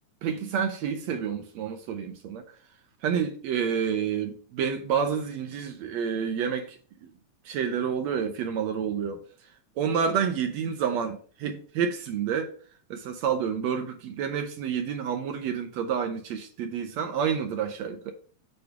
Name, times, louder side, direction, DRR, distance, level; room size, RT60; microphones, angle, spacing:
voice 1, 0.2-2.4 3.0-7.1 7.5-9.2 9.8-12.5 12.9-18.1, right 7 dB, 75° right, 2.0 m, -29 dB
8.7 x 3.3 x 5.8 m
omnidirectional pair, 3.3 m